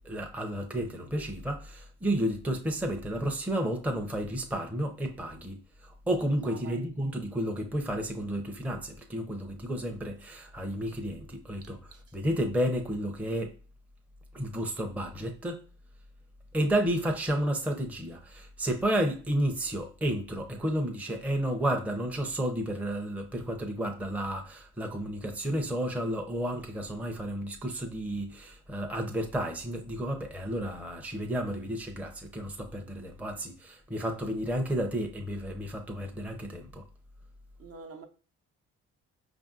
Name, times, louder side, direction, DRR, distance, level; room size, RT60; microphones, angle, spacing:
voice 1, 0.0-5.6 5.8-11.8 12.1-13.5 14.3-15.6 16.5-36.8, right 1 dB, 5° right, 0.5 m, -31 dB
voice 2, 6.4-6.8 11.6-12.2 37.6-38.1, right 4 dB, 50° right, 0.7 m, -47 dB
5.1 x 2.6 x 2.4 m
cardioid pair, 90°, 30 cm